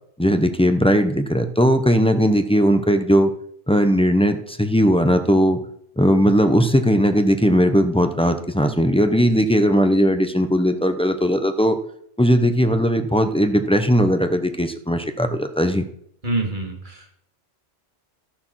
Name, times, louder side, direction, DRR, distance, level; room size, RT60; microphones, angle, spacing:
voice 1, 0.2-3.3 3.7-5.6 6.0-11.8 12.2-15.8, equal, 5° left, 7 dB, 0.7 m, -18 dB
voice 2, 16.2-17.1, right 2 dB, 40° right, 0 dB, 2.7 m, -26 dB
12.5 x 7.9 x 6.2 m, 0.68 s
omnidirectional pair, 1.3 m